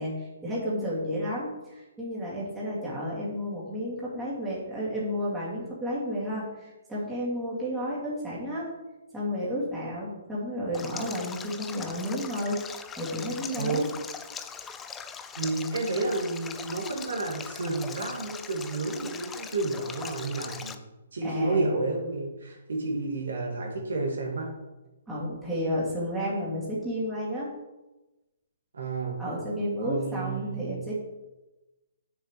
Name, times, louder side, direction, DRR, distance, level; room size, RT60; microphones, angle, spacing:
voice 1, 0.0-8.7 9.1-13.9 21.2-21.7 25.1-27.5 29.2-31.0, equal, 5° right, -8 dB, 2.3 m, -32 dB
Stream, 10.7-20.8, left 6 dB, 10° left, 0.4 m, -41 dB
voice 2, 15.4-20.8 21.1-24.5 28.7-29.2 29.8-30.8, right 3 dB, 85° right, 0 dB, 1.9 m, -31 dB
7.3 x 7.0 x 3.2 m, 1.1 s
hypercardioid pair, 155°, 0 cm